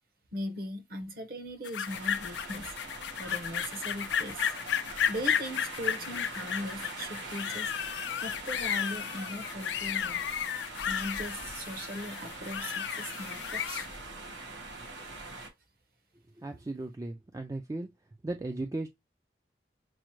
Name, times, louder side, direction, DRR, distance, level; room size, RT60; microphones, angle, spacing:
voice 1, 0.3-2.7 3.2-4.5 5.1-7.7 8.2-10.2 10.9-13.9, equal, 55° right, 1.0 m, -39 dB
sound 1, 1.6-13.9, left 9 dB, 75° left, 0.4 m, -33 dB
sound 2, 1.8-15.5, right 2 dB, 80° right, 1.3 m, -43 dB
voice 2, 16.4-17.9 18.2-18.9, right 2 dB, 20° right, 0.3 m, -36 dB
6.1 x 2.1 x 3.0 m
head